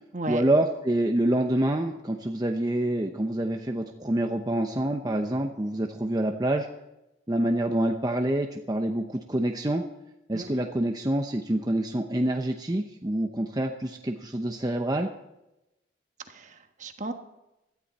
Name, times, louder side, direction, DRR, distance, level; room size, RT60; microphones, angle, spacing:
voice 1, 0.3-6.7 7.3-9.8 10.3-15.1, right 1 dB, 20° right, 3 dB, 0.8 m, -26 dB
voice 2, 10.3-10.6 16.3-17.1, right 2 dB, 40° right, 7 dB, 1.3 m, -35 dB
17.0 x 13.0 x 4.2 m, 0.91 s
head